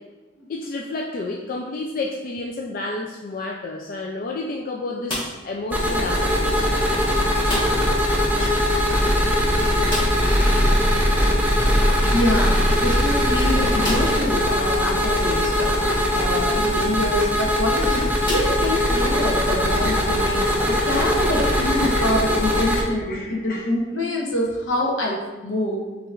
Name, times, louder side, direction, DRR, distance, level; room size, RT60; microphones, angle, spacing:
voice 1, 0.5-6.6 8.4-8.7 20.1-21.3 21.6-21.7 21.9-22.1 22.7-23.7, left 2 dB, 45° left, 0 dB, 0.3 m, -31 dB
sound 1, 5.0-5.6 7.4-8.0 8.3-8.4 8.7-8.8 9.9-10.4 12.2-12.3 12.9-13.0 13.8-14.3 15.0-15.1 17.1-17.4 18.2-19.1, left 1 dB, 25° left, 1.3 m, -31 dB
sound 2, 5.7-22.8, equal, 10° right, 0.6 m, -20 dB
voice 2, 12.1-15.7 16.1-25.8, left 1 dB, 75° left, -2 dB, 1.0 m, -25 dB
6.6 x 2.9 x 2.5 m, 1.2 s
head